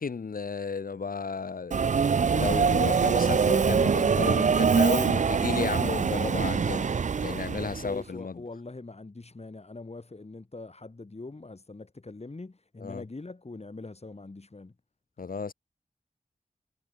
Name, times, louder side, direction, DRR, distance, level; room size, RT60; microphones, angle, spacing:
voice 1, 0.0-1.8 2.3-6.9 7.2-8.4 12.8-13.0 15.2-15.5, left 5 dB, 75° left, 1.3 m, -33 dB
Subway metro underground, 1.7-7.9, right 6 dB, 55° right, 0.5 m, -24 dB
voice 2, 7.6-14.7, left 3 dB, 45° left, 7.7 m, -42 dB
wide cardioid pair, 60°, 15 cm